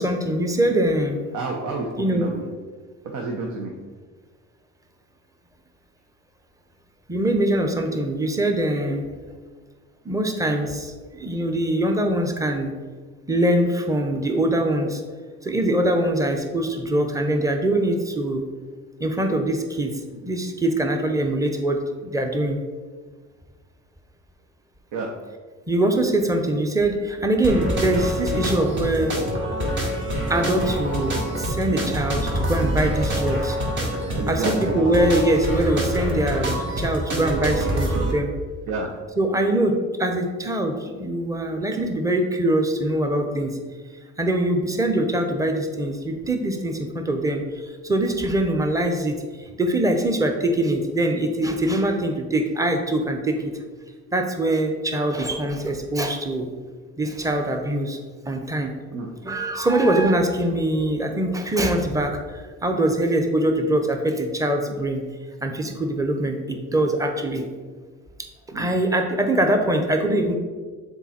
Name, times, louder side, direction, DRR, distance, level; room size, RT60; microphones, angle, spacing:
voice 1, 0.0-1.2 2.0-2.3 7.1-9.0 10.0-12.7 13.3-15.0 15.4-18.5 19.0-22.6 25.7-29.2 30.3-33.6 34.3-38.3 39.2-43.6 44.2-53.5 54.1-56.5 57.0-58.0 58.3-58.7 59.2-65.0 65.4-67.4 68.5-70.3, right 1 dB, 10° right, 4 dB, 0.9 m, -23 dB
voice 2, 1.3-2.4 3.1-3.7 24.9-25.1 34.1-34.8 38.7-38.9 58.9-59.1 68.5-68.7, right 3 dB, 75° right, 0 dB, 0.9 m, -29 dB
sound 1, 27.4-38.1, right 1 dB, 40° right, 1.7 m, -25 dB
7.0 x 4.0 x 4.3 m, 1.5 s
cardioid pair, 90°, 30 cm